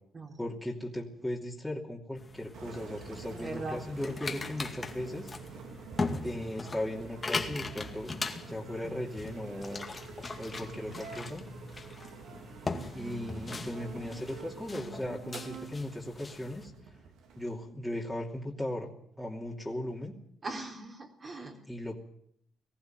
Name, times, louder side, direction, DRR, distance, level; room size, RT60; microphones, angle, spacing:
voice 1, 0.4-5.3 6.2-8.1 8.5-9.9 10.4-11.4 12.9-16.7 17.4-18.9 19.2-20.1 21.7-21.9, left 1 dB, 5° left, -2 dB, 2.8 m, -37 dB
sound 1, 2.2-16.6, left 3 dB, 30° left, 2.1 m, -40 dB
Engine, 2.5-17.5, right 4 dB, 80° right, 3.4 m, -46 dB
voice 2, 3.3-3.8 4.3-4.4 20.4-21.6, right 2 dB, 40° right, 1 dB, 3.4 m, -40 dB
19.5 x 14.5 x 9.3 m, 0.68 s
cardioid pair, 90°, 0 cm